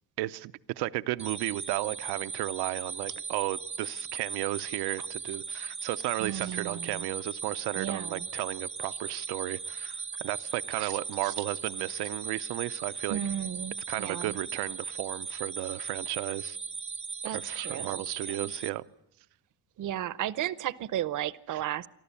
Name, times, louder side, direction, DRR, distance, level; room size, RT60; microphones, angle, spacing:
voice 1, 0.2-13.2 13.9-16.6 17.3-18.8 21.5-21.6, right 17 dB, 85° right, 12 dB, 0.7 m, -34 dB
sound 1, 1.2-18.7, right 5 dB, 15° right, 0.7 m, -38 dB
voice 2, 6.2-7.0 7.8-8.3 10.7-11.0 11.2-11.3 13.1-14.4 17.2-18.5 19.8-21.9, right 11 dB, 50° right, 18 dB, 0.7 m, -34 dB
24.5 x 14.0 x 8.4 m, 0.82 s
cardioid pair, 120°, 39 cm